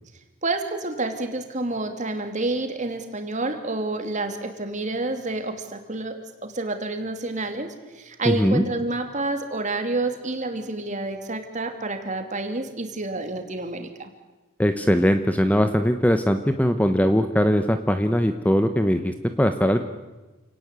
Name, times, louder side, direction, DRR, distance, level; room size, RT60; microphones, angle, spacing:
voice 1, 0.4-14.1, right 2 dB, 35° right, 6 dB, 2.8 m, -29 dB
voice 2, 8.2-8.6 14.6-19.8, equal, 5° left, 8 dB, 0.9 m, -20 dB
28.5 x 18.5 x 8.3 m, 1.2 s
head